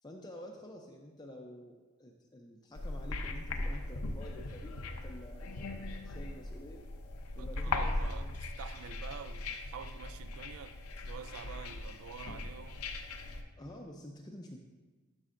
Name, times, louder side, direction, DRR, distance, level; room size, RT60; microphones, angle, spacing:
voice 1, 0.0-6.8 7.3-8.3 13.6-14.6, left 1 dB, 20° left, 0.5 m, -49 dB
sound 1, 2.7-13.4, left 2 dB, 85° left, 0.7 m, -39 dB
voice 2, 7.4-12.9, right 7 dB, 75° right, 0.3 m, -48 dB
12.5 x 6.1 x 2.5 m
head